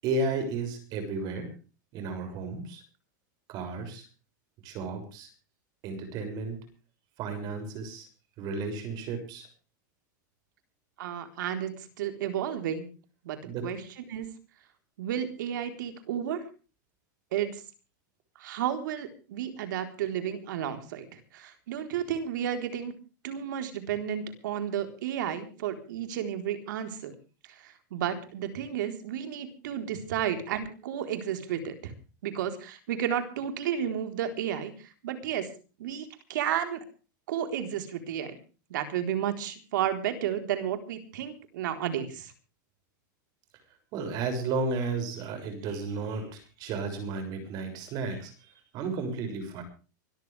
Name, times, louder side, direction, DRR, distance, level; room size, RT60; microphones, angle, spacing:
voice 1, 0.0-1.5 1.9-2.8 3.5-4.0 4.6-5.3 5.8-6.6 7.2-8.1 8.4-9.5 13.4-13.7 43.9-48.3 48.7-49.6, right 3 dB, 40° right, 8 dB, 6.7 m, -33 dB
voice 2, 11.0-12.9 13.2-14.3 15.0-16.4 17.3-17.5 18.4-21.1 21.3-22.9 23.2-27.1 27.6-31.9 32.2-34.7 35.0-35.5 35.8-36.8 37.3-38.4 38.7-42.3, right 9 dB, 75° right, 7 dB, 4.0 m, -32 dB
24.5 x 14.0 x 3.5 m, 0.35 s
supercardioid pair, 145°, 10 cm